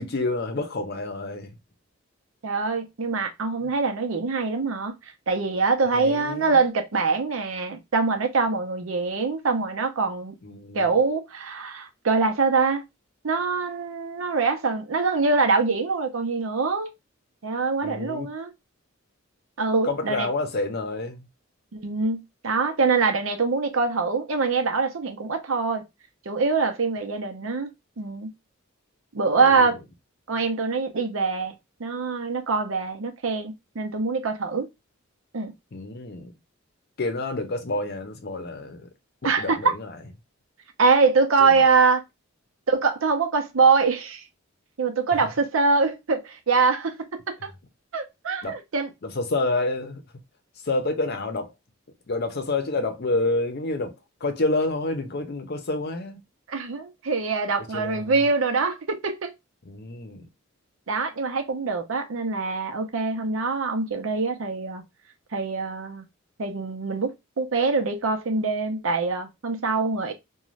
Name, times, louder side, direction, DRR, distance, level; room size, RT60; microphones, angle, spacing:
voice 1, 0.0-1.6 5.9-6.5 10.4-10.9 17.8-18.3 19.8-21.2 29.3-29.7 35.7-36.3 37.0-38.8 39.2-40.0 41.4-41.6 48.4-48.6 49.0-50.0 50.6-51.5 52.1-53.9 54.2-56.2 57.7-58.1 59.7-60.3, left 2 dB, 50° left, 0.6 m, -28 dB
voice 2, 2.4-4.9 5.3-10.4 10.7-12.8 13.2-16.9 17.4-18.5 19.6-20.3 21.7-25.8 26.3-27.7 28.0-28.3 29.1-29.8 30.3-31.5 31.8-34.7 35.3-35.5 39.2-39.7 40.8-42.0 42.7-44.2 44.8-47.5 47.9-48.9 56.5-59.3 60.9-64.8 65.3-66.0 66.4-70.1, right 4 dB, 80° right, 0.7 m, -24 dB
2.5 x 2.3 x 3.1 m
head